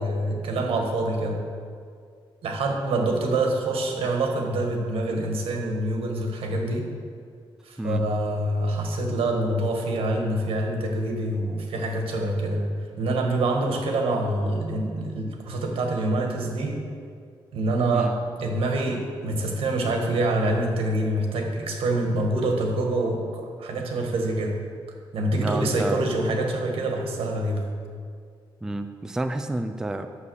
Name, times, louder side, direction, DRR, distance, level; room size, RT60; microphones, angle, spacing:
voice 1, 0.0-1.4 2.4-6.9 7.6-12.7 13.0-16.8 17.5-24.6 25.1-27.7, right 2 dB, 85° right, 2 dB, 1.6 m, -26 dB
voice 2, 25.4-26.0 28.6-30.1, right 1 dB, 5° right, 7 dB, 0.4 m, -29 dB
9.8 x 6.9 x 6.4 m, 2.2 s
wide cardioid pair, 180°, 9 cm